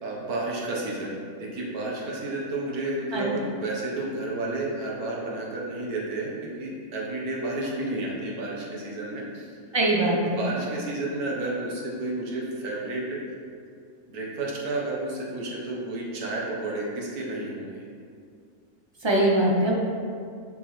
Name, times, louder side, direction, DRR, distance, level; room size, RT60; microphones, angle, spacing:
voice 1, 0.0-9.5 10.1-13.4 14.1-17.8, right 2 dB, 75° right, -4 dB, 1.7 m, -31 dB
voice 2, 9.7-10.4 19.0-19.8, right 1 dB, 20° right, -2 dB, 0.8 m, -22 dB
7.4 x 6.0 x 3.2 m, 2.3 s
omnidirectional pair, 1.6 m